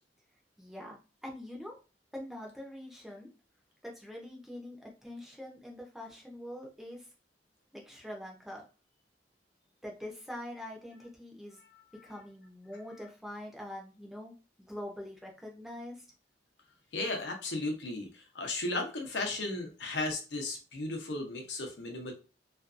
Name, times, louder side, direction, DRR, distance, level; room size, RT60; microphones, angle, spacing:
voice 1, 0.6-1.8 2.1-3.3 3.8-7.1 7.7-8.6 9.8-11.6 12.0-14.3 14.6-16.1, left 1 dB, ahead, 0 dB, 0.5 m, -44 dB
voice 2, 16.9-22.1, left 2 dB, 70° left, 3 dB, 0.7 m, -35 dB
2.5 x 2.3 x 2.4 m, 0.32 s
head